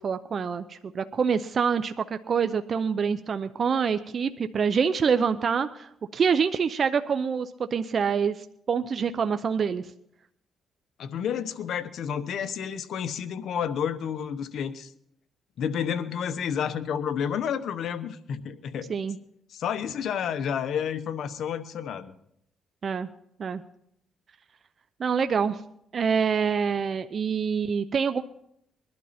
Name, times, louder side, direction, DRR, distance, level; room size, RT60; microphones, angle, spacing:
voice 1, 0.0-9.8 18.9-19.2 22.8-23.1 23.4-23.6 25.0-25.6 25.9-28.2, right 6 dB, 50° right, 10 dB, 0.6 m, -26 dB
voice 2, 11.0-14.9 15.6-18.9 19.5-22.1, left 8 dB, 70° left, 12 dB, 1.0 m, -30 dB
22.0 x 12.0 x 4.3 m, 0.73 s
cardioid pair, 90°, 0 cm